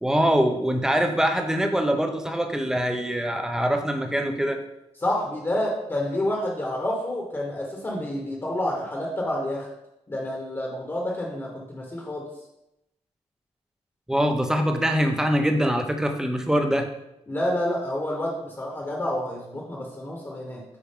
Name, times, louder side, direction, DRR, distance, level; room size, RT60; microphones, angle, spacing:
voice 1, 0.0-4.6 14.1-16.9, equal, 5° right, 4 dB, 0.7 m, -23 dB
voice 2, 5.0-9.7 10.1-12.3 17.3-20.6, left 1 dB, 20° left, -1 dB, 1.2 m, -29 dB
8.5 x 4.6 x 3.7 m, 0.86 s
wide cardioid pair, 135°, 12 cm